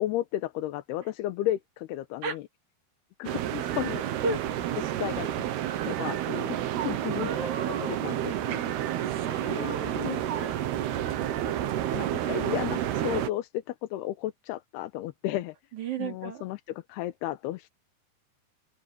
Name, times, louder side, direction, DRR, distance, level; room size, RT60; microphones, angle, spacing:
voice 1, 0.0-2.4 3.2-4.1 5.0-5.3 5.9-6.6 6.8-7.3 7.7-9.0 9.5-10.2 11.9-15.6 16.0-17.7, left 14 dB, 85° left, 2.9 m, -33 dB
sound 1, 3.3-13.3, right 11 dB, 80° right, 3.4 m, -30 dB
voice 2, 7.1-8.0 9.1-10.1 10.4-10.6 11.4-12.0 15.7-16.4, right 3 dB, 50° right, 3.7 m, -35 dB
open air
omnidirectional pair, 4.6 m